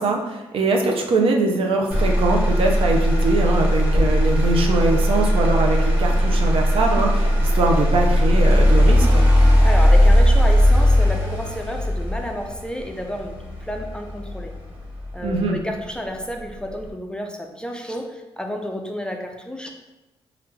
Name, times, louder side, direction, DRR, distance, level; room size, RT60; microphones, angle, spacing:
voice 1, 0.0-9.3 15.2-15.6, right 2 dB, 60° right, 2 dB, 0.6 m, -22 dB
Motor vehicle (road), 1.9-15.9 16.4-16.9, equal, 20° right, 1.2 m, -18 dB
voice 2, 9.6-14.5 15.1-19.7, equal, 10° left, 2 dB, 0.4 m, -31 dB
3.2 x 2.4 x 3.1 m, 1.0 s
cardioid pair, 75°, 11 cm